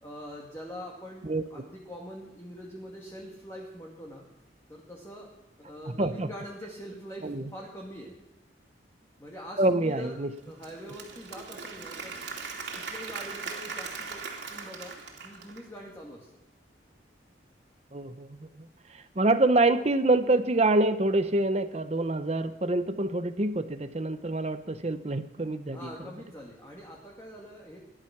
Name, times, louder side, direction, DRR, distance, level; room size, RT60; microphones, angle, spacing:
voice 1, 0.0-4.2 4.7-5.3 5.6-8.1 9.2-10.1 10.4-12.3 12.7-14.2 14.5-14.9 15.2-16.3 25.7-27.8, equal, 15° left, -2 dB, 2.2 m, -43 dB
voice 2, 5.9-6.3 7.2-7.4 9.6-10.3 17.9-18.5 18.9-25.9, right 2 dB, 35° right, 10 dB, 0.7 m, -26 dB
Applause / Crowd, 10.4-15.8, right 4 dB, 70° right, 2.9 m, -39 dB
17.0 x 11.5 x 6.0 m, 1.0 s
head